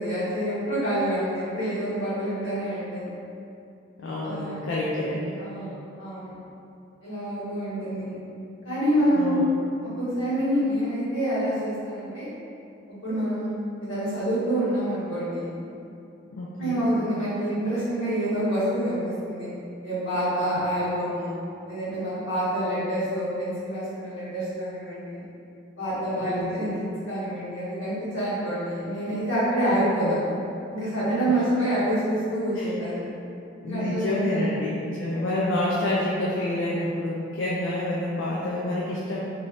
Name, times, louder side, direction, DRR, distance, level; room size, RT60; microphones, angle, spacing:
voice 1, 0.0-3.0 4.2-4.5 5.4-5.7 6.0-6.3 7.0-8.1 8.6-9.4 10.0-12.3 12.9-13.5 13.8-15.5 16.6-19.5 19.8-21.4 21.7-25.2 25.8-30.2 30.7-33.1 33.6-34.5, equal, 90° left, -12 dB, 1.5 m, -27 dB
voice 2, 4.0-5.3 8.0-8.1 9.1-9.4 16.3-16.9 26.1-26.6 29.7-30.2 31.3-31.4 32.6-32.7 33.6-39.2, left 1 dB, 75° left, -5 dB, 0.4 m, -28 dB
2.7 x 2.6 x 3.2 m, 2.6 s
head